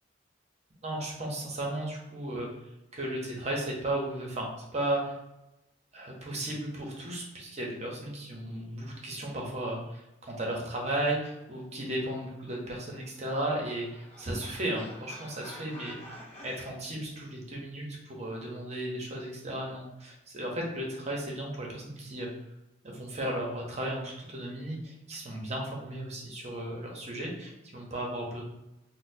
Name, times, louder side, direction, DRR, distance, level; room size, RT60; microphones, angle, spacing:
voice 1, 0.8-2.5 2.9-5.1 5.9-16.0 16.4-22.3 22.8-28.4, right 1 dB, 40° right, -1 dB, 0.7 m, -35 dB
sound 1, 12.9-16.7, equal, 35° left, 0.6 m, -49 dB
4.0 x 2.0 x 2.6 m, 0.93 s
head